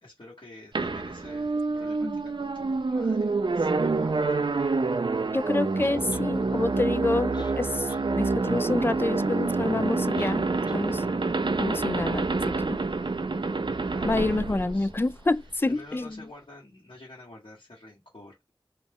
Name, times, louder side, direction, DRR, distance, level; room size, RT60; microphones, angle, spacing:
voice 1, 0.0-4.2 13.9-14.9 15.6-18.5, left 2 dB, 70° left, 1.6 m, -48 dB
sound 1, 0.8-15.5, right 3 dB, 65° right, 0.4 m, -27 dB
voice 2, 5.3-10.5 10.7-11.0 11.6-12.8 14.0-16.2, left 2 dB, 25° left, 0.3 m, -28 dB
sound 2, 5.8-6.3 7.1-7.2 7.3-8.1 8.4-8.5 10.1-10.4 10.7-10.8, left 2 dB, 55° left, 0.9 m, -46 dB
4.1 x 2.3 x 3.5 m
wide cardioid pair, 45°, 9 cm